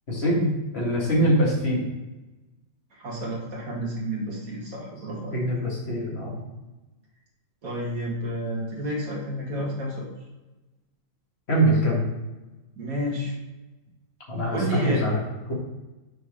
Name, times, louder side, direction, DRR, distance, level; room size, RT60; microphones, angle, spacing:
voice 1, 0.1-1.9 5.3-6.4 11.5-12.1 14.3-15.2, right 1 dB, 35° left, -3 dB, 2.1 m, -23 dB
voice 2, 3.0-5.4 7.6-10.1 12.8-13.3 14.5-15.0, right 1 dB, 50° right, -4 dB, 2.3 m, -30 dB
6.2 x 4.6 x 5.0 m, 1.1 s
omnidirectional pair, 1.9 m